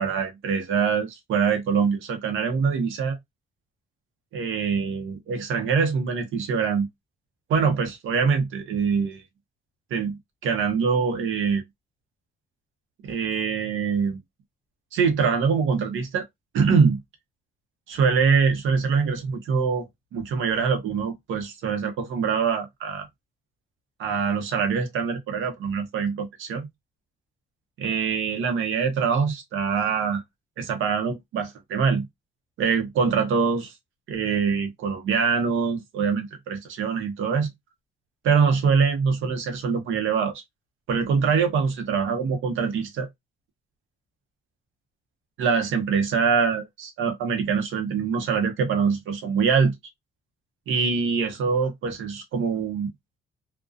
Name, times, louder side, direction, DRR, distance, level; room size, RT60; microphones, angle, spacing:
voice 1, 0.0-3.2 4.3-6.9 7.5-9.2 9.9-11.6 13.0-14.2 14.9-16.2 16.5-17.0 17.9-19.9 20.1-23.1 24.0-26.7 27.8-30.2 30.6-32.1 32.6-33.7 34.1-37.5 38.2-40.4 40.9-43.1 45.4-49.8 50.7-52.9, right 5 dB, 80° right, 0.8 m, -24 dB
2.3 x 2.2 x 2.4 m
cardioid pair, 90°, 20 cm